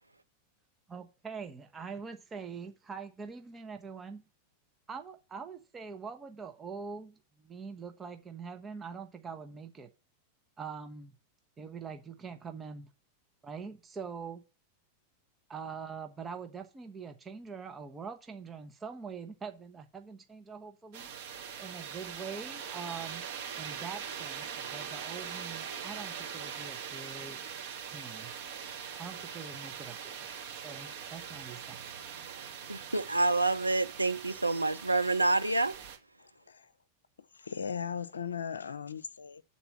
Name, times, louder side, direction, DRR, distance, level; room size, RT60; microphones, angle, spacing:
voice 1, 0.9-4.2 4.9-9.9 10.6-11.1 11.6-12.9 13.4-14.4 15.5-21.1 21.6-23.2 23.6-27.4 27.9-28.3 29.0-30.3 30.6-31.8, right 5 dB, 20° right, 0.9 m, -44 dB
sound 1, 20.9-36.0, right 7 dB, 50° right, 1.9 m, -42 dB
voice 2, 32.7-35.7, right 2 dB, 85° right, 0.5 m, -28 dB
voice 3, 36.2-36.7 37.2-39.4, left 7 dB, 70° left, 0.6 m, -38 dB
8.0 x 4.2 x 7.1 m
figure-of-eight pair, 90°, 0 cm